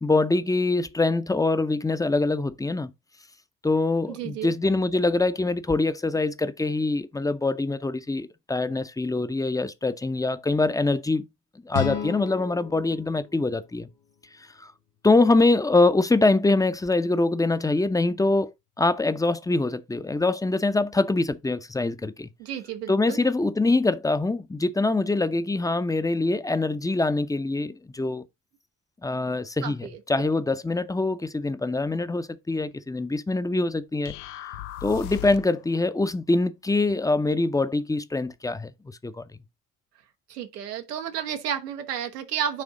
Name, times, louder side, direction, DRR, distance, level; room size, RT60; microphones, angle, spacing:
voice 1, 0.0-2.9 3.6-11.2 11.6-13.9 14.6-14.7 15.0-22.3 22.9-28.2 29.0-34.2 34.8-39.2, left 2 dB, 5° left, 0.7 m, -24 dB
voice 2, 4.1-4.5 22.4-23.2 29.6-30.0 40.3-42.6, right 9 dB, 80° right, 1.1 m, -32 dB
sound 1, 11.7-14.7, left 10 dB, 55° left, 1.9 m, -35 dB
sound 2, 34.0-35.6, left 13 dB, 75° left, 0.5 m, -37 dB
10.0 x 3.5 x 3.8 m
figure-of-eight pair, 50°, 47 cm